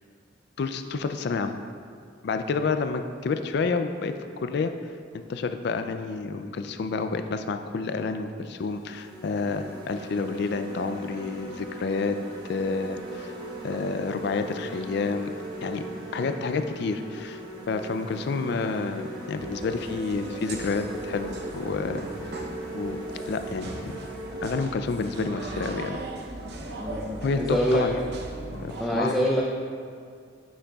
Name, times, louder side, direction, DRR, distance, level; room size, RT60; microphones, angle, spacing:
voice 1, 0.6-1.5 2.2-4.1 4.4-4.7 5.1-12.2 12.5-13.3 13.6-15.3 15.6-15.8 16.1-17.4 17.7-22.0 22.3-22.4 22.7-23.0 23.3-24.0 24.4-26.0 27.2-28.0 28.6-29.1, left 4 dB, 60° left, 8 dB, 0.4 m, -29 dB
sound 1, 8.4-24.6, right 2 dB, 25° right, 1.2 m, -39 dB
sound 2, 19.4-28.8, right 1 dB, 60° right, 0.7 m, -39 dB
voice 2, 27.3-27.9 28.8-29.4, equal, ahead, -4 dB, 0.5 m, -24 dB
9.7 x 6.4 x 2.3 m, 2.3 s
head